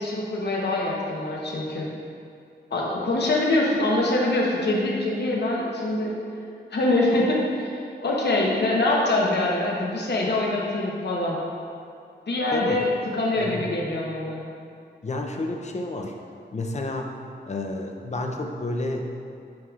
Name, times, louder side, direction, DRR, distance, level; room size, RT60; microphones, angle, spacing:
voice 1, 0.0-1.9 2.7-6.1 6.7-7.4 7.6-7.7 8.0-11.4 12.3-14.4, left 2 dB, 65° left, -3 dB, 0.9 m, -24 dB
voice 2, 12.5-12.8 13.4-13.7 15.0-16.1 16.5-17.1 17.5-19.1, left 2 dB, 35° left, 3 dB, 0.5 m, -30 dB
9.4 x 4.8 x 2.4 m, 2.4 s
wide cardioid pair, 130°, 19 cm